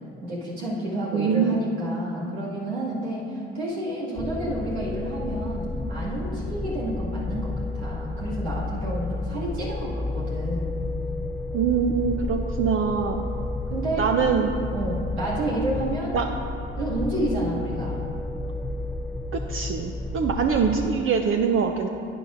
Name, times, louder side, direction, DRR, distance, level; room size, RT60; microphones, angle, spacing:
voice 1, 0.2-10.9 13.7-14.1 14.7-16.2 16.7-18.0, right 1 dB, 90° right, -7 dB, 2.2 m, -30 dB
voice 2, 1.1-1.6 11.5-13.2 14.0-14.6 16.1-16.3 19.3-21.9, right 6 dB, 45° right, 4 dB, 0.6 m, -23 dB
sound 1, 4.2-20.9, left 2 dB, ahead, 0.5 m, -31 dB
11.5 x 9.2 x 2.6 m, 2.7 s
hypercardioid pair, 60°, 31 cm